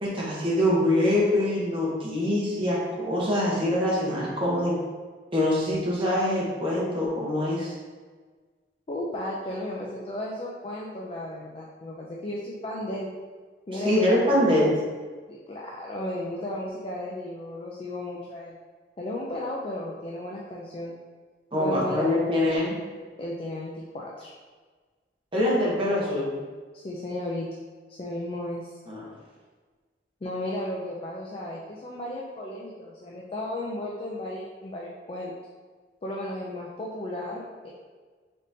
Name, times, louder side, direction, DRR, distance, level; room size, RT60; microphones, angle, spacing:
voice 1, 0.0-4.8 5.3-7.7 13.7-14.8 21.5-22.8 25.3-26.3 28.9-29.1, left 1 dB, 30° right, -5 dB, 1.0 m, -24 dB
voice 2, 8.9-13.1 13.7-14.2 14.6-14.7 15.3-18.6 19.0-20.9 21.5-22.1 23.2-24.3 26.7-27.5 28.0-28.8 30.2-35.3 36.0-37.7, left 1 dB, 30° left, -4 dB, 0.4 m, -34 dB
3.8 x 3.5 x 2.7 m, 1.4 s
head